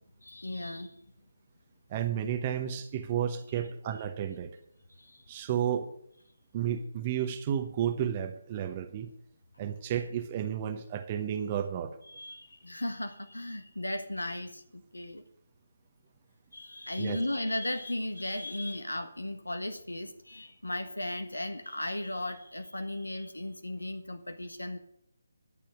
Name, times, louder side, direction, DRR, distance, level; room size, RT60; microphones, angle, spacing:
voice 1, 0.2-1.0 4.9-5.3 12.1-15.2 16.5-24.8, left 1 dB, 85° left, 8 dB, 1.4 m, -36 dB
voice 2, 1.9-4.6 5.3-5.9 6.5-9.1 9.6-11.9 17.0-17.2, right 9 dB, 25° right, 8 dB, 0.9 m, -32 dB
12.0 x 6.9 x 8.9 m, 0.71 s
figure-of-eight pair, 150°, 0 cm